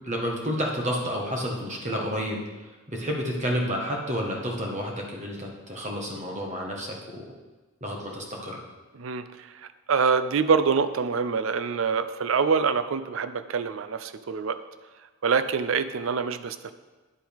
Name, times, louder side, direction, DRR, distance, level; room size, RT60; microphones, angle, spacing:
voice 1, 0.0-2.4 2.9-7.3 7.8-8.6, equal, 30° right, 0 dB, 1.3 m, -30 dB
voice 2, 8.9-14.6 15.2-16.7, right 5 dB, 60° right, 12 dB, 0.4 m, -25 dB
9.8 x 7.7 x 3.5 m, 1.3 s
head